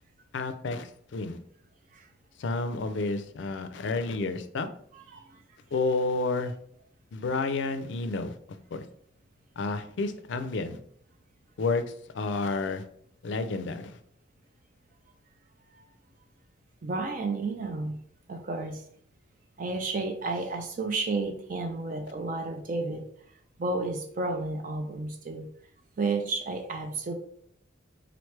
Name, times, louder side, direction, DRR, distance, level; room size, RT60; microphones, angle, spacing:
voice 1, 0.3-1.4 2.4-4.7 5.7-6.5 7.1-8.3 8.7-8.8 9.6-10.8 11.6-11.8 12.1-12.8 13.2-14.0, left 3 dB, 70° left, 10 dB, 0.4 m, -30 dB
voice 2, 4.9-5.4 15.7-15.8 16.8-18.0 18.3-18.8 19.6-23.1 23.6-25.5 26.0-27.1, right 3 dB, 45° right, 5 dB, 0.4 m, -32 dB
3.9 x 3.2 x 3.2 m, 0.66 s
head